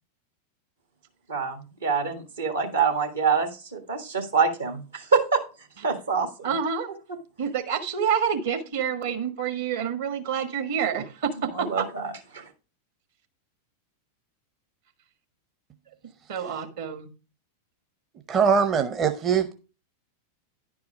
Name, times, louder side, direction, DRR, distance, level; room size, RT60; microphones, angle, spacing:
voice 1, 1.3-5.4 5.8-6.5 11.6-12.4, right 5 dB, 75° right, 1.8 m, -26 dB
voice 2, 6.4-6.9 7.4-11.9 16.3-17.1, right 7 dB, 55° right, 1.5 m, -28 dB
voice 3, 18.3-19.5, right 6 dB, 30° right, 0.7 m, -22 dB
10.5 x 4.8 x 5.0 m
figure-of-eight pair, 90°, 0 cm